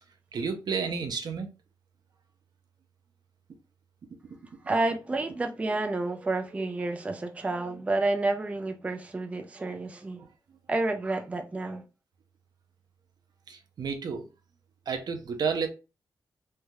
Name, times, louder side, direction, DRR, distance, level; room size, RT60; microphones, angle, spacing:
voice 1, 0.3-1.5 13.5-14.3 14.9-15.7, right 5 dB, 65° right, 0.6 m, -31 dB
voice 2, 4.7-10.2 10.7-11.8, right 2 dB, 15° right, 0.4 m, -30 dB
3.2 x 2.7 x 2.2 m
wide cardioid pair, 105°, 8 cm